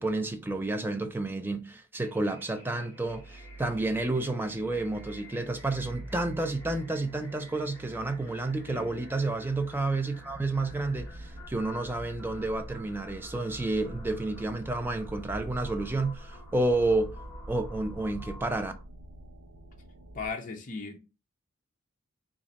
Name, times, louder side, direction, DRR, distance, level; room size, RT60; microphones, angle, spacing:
voice 1, 0.0-17.1 17.5-18.7, right 2 dB, 10° right, 0.4 m, -30 dB
sound 1, 2.0-18.8, left 1 dB, 10° left, 1.1 m, -53 dB
sound 2, 2.9-20.3, right 1 dB, 85° right, 0.5 m, -45 dB
voice 2, 20.1-21.0, left 4 dB, 40° left, 0.6 m, -37 dB
3.1 x 2.4 x 3.9 m
head